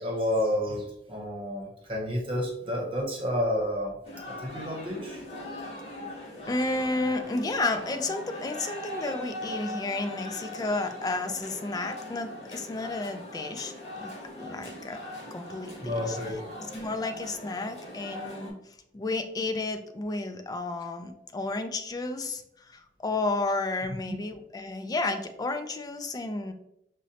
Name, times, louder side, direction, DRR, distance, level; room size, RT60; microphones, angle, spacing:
voice 1, 0.0-4.0 4.3-5.2 15.8-16.4, equal, 30° right, 0 dB, 0.9 m, -30 dB
sound 1, 4.0-18.5, left 1 dB, 40° left, 1.2 m, -40 dB
voice 2, 6.5-13.7 14.0-15.0 15.3-16.2 16.7-26.5, left 2 dB, 20° left, 7 dB, 0.3 m, -32 dB
5.0 x 2.1 x 2.8 m, 0.78 s
head